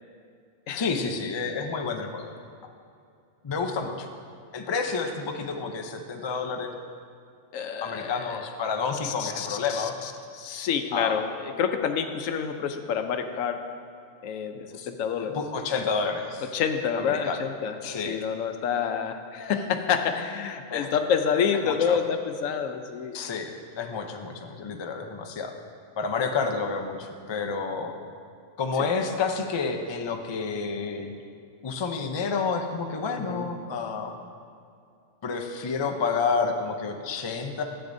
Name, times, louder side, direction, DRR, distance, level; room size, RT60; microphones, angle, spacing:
voice 1, 0.7-2.3 3.4-4.1 4.5-6.7 7.8-9.9 10.9-11.2 14.8-14.9 15.2-16.5 17.0-17.4 17.8-18.2 20.7-20.9 21.6-22.0 23.1-25.5 26.0-27.9 28.6-31.1 31.6-34.1 35.2-37.6, left 5 dB, 40° left, 4 dB, 0.4 m, -29 dB
voice 2, 7.5-8.4 9.0-13.6 14.2-15.4 16.5-17.8 18.1-23.2 33.3-33.5, left 7 dB, 80° left, 7 dB, 1.0 m, -28 dB
13.5 x 8.0 x 2.6 m, 2.4 s
omnidirectional pair, 1.3 m